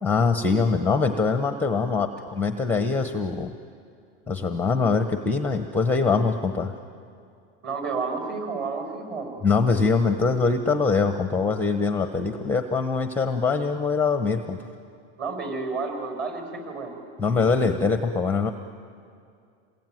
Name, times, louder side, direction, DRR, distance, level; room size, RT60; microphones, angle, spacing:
voice 1, 0.0-3.5 4.3-6.7 9.4-14.7 17.2-18.5, left 4 dB, 5° left, 7 dB, 0.8 m, -23 dB
voice 2, 7.6-9.3 15.2-16.9, right 4 dB, 30° right, 4 dB, 5.8 m, -30 dB
28.0 x 21.5 x 9.2 m, 2.4 s
supercardioid pair, 140°, 35 cm